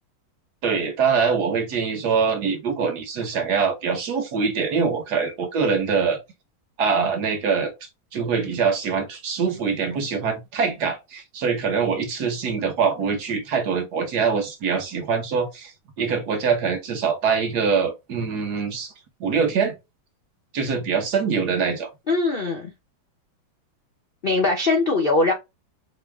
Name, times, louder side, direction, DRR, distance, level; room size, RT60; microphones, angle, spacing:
voice 1, 0.6-6.2 6.8-15.7 16.0-18.9 19.2-19.7 20.5-21.9, right 5 dB, 60° right, 1.4 m, -24 dB
voice 2, 22.1-22.7 24.2-25.3, left 3 dB, 75° left, 0.5 m, -21 dB
4.5 x 2.1 x 3.4 m
omnidirectional pair, 2.2 m